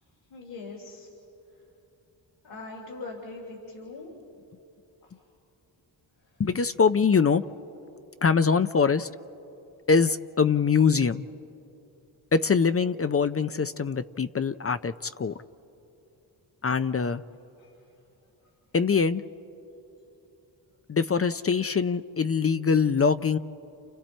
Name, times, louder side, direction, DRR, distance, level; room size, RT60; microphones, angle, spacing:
voice 1, 0.3-1.1 2.4-4.1, left 3 dB, 85° left, -2 dB, 3.1 m, -41 dB
voice 2, 6.4-7.4 8.2-9.1 9.9-11.2 12.3-15.4 16.6-17.2 18.7-19.2 20.9-23.4, left 5 dB, 30° left, 12 dB, 0.6 m, -23 dB
29.5 x 29.5 x 4.4 m, 2.9 s
cardioid pair, 55°, 45 cm